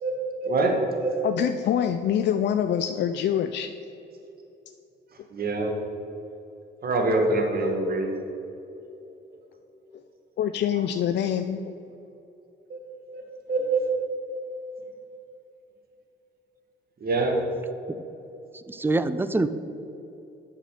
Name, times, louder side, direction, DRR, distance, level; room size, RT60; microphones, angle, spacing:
voice 1, 0.0-1.2 5.3-5.8 6.8-8.1 10.7-10.8 12.7-12.9 13.1-13.8 17.0-17.4, right 2 dB, 50° right, 2 dB, 1.6 m, -25 dB
voice 2, 1.2-3.7 10.4-11.6, left 9 dB, 60° left, 8 dB, 0.4 m, -25 dB
voice 3, 18.5-19.5, right 2 dB, 10° right, 12 dB, 0.4 m, -25 dB
8.2 x 5.7 x 6.6 m, 2.9 s
cardioid pair, 90°, 20 cm